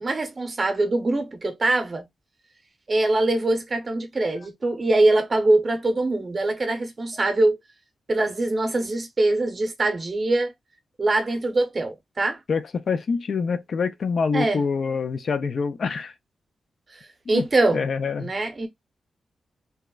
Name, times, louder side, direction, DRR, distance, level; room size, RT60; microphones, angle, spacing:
voice 1, 0.0-2.1 2.9-7.6 8.1-10.5 11.0-12.4 14.3-14.6 16.9-17.0 17.3-17.9 18.2-18.7, right 2 dB, 30° right, 0.7 m, -23 dB
voice 2, 12.5-16.1 17.3-17.4 17.7-18.3, left 5 dB, 55° left, 0.4 m, -25 dB
3.3 x 2.0 x 2.2 m
wide cardioid pair, 135°, 0 cm